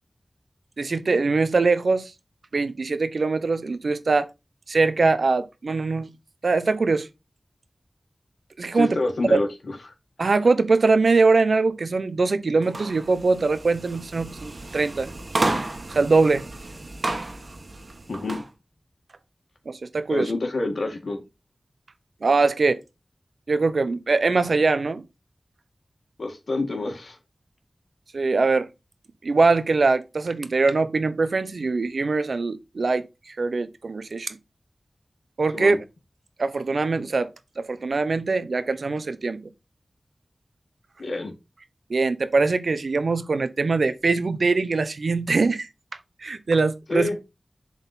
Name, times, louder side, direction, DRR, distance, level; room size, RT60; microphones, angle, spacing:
voice 1, 0.8-2.1 2.5-4.3 4.7-6.1 6.4-7.1 8.6-9.0 9.3-9.4 10.2-15.1 15.9-16.4 19.7-20.3 22.2-22.8 23.5-25.0 28.1-28.7 29.2-34.4 35.4-35.8 36.4-37.3 37.6-39.4 41.9-45.7 46.2-47.1, right 3 dB, 80° right, 0.8 m, -22 dB
voice 2, 8.7-9.8 18.1-18.4 20.1-21.2 26.2-27.2 35.5-35.8 41.0-41.4 46.9-47.2, left 2 dB, 80° left, 1.8 m, -27 dB
sound 1, 12.6-18.5, right 2 dB, 60° right, 1.5 m, -31 dB
7.2 x 4.1 x 4.1 m
wide cardioid pair, 55°, 0 cm